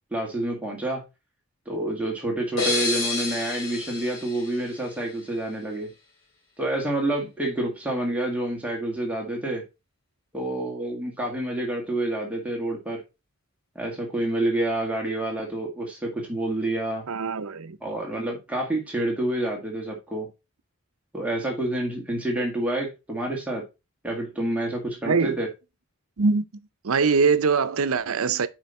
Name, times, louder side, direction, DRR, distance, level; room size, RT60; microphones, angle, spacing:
voice 1, 0.1-1.0 1.7-5.9 6.6-9.6 10.3-13.0 13.8-17.1 17.8-20.3 21.1-23.6 24.0-25.5, right 1 dB, 5° right, 2.0 m, -28 dB
sound 1, 2.6-5.3, left 3 dB, 65° left, 3.0 m, -30 dB
voice 2, 17.1-17.8 25.1-25.4 26.2-26.4 26.8-28.5, right 5 dB, 85° right, 0.7 m, -22 dB
7.9 x 5.2 x 4.1 m
head